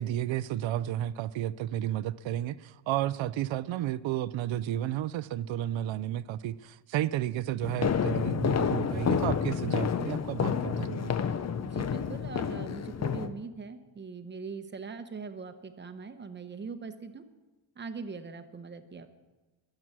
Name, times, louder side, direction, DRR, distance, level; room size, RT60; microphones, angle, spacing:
voice 1, 0.0-11.2, right 12 dB, 70° right, 17 dB, 0.6 m, -32 dB
sound 1, 7.6-13.3, left 7 dB, 35° left, 0.6 m, -29 dB
voice 2, 11.6-17.2 17.8-19.1, right 5 dB, 20° right, 9 dB, 0.9 m, -41 dB
22.5 x 7.9 x 6.1 m, 1.2 s
wide cardioid pair, 165°, 49 cm